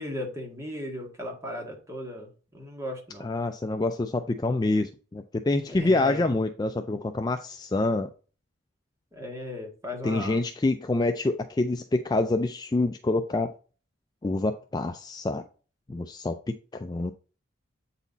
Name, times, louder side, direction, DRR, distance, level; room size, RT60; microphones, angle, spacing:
voice 1, 0.0-2.3 2.5-3.3 5.8-6.2 9.1-10.4, left 1 dB, 15° right, 0 dB, 1.7 m, -36 dB
voice 2, 3.2-8.1 10.0-13.5 14.2-15.4 15.9-17.1, left 2 dB, 20° left, 7 dB, 0.3 m, -27 dB
8.2 x 4.1 x 4.0 m, 0.38 s
head